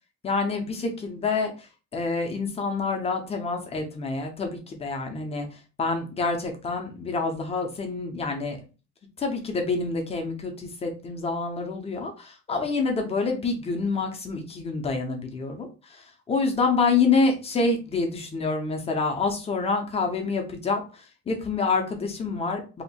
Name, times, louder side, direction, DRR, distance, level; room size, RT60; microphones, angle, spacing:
voice 1, 0.2-1.5 1.9-5.5 5.8-8.6 9.2-20.8 21.3-22.8, left 4 dB, 20° left, 3 dB, 0.7 m, -27 dB
2.9 x 2.6 x 4.1 m, 0.32 s
cardioid pair, 175°, 30 cm